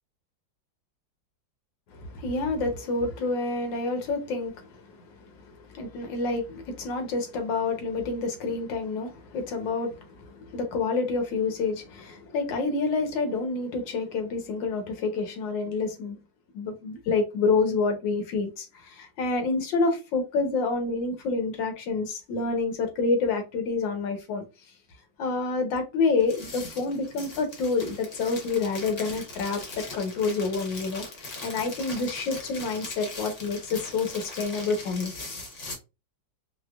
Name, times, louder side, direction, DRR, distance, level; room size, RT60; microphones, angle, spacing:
voice 1, 1.9-16.2 16.5-24.4 25.2-31.0 31.4-35.1, left 4 dB, 80° left, 1.5 m, -28 dB
sound 1, 26.2-35.8, left 2 dB, 45° left, 0.8 m, -40 dB
4.7 x 2.0 x 2.3 m
omnidirectional pair, 2.0 m